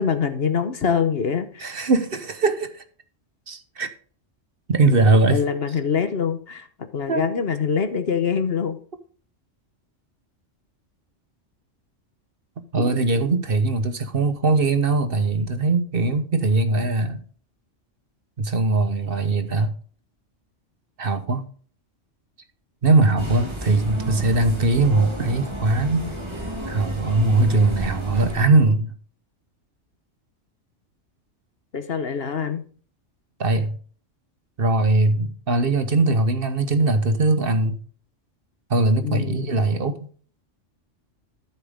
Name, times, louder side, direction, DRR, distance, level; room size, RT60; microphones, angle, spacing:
voice 1, 0.0-1.8 5.3-6.7 6.9-8.8 31.7-32.6 39.0-39.6, left 6 dB, 55° left, 1.3 m, -24 dB
voice 2, 1.6-2.8 3.5-3.9 4.7-5.4 7.1-7.4 12.7-17.2 18.4-19.7 21.0-21.5 22.8-26.1 26.7-28.9 33.4-33.8 34.6-37.8 38.7-40.0, right 2 dB, 50° right, 1.2 m, -20 dB
sound 1, 23.2-28.4, right 1 dB, 20° right, 2.2 m, -32 dB
13.5 x 7.2 x 3.5 m
omnidirectional pair, 1.3 m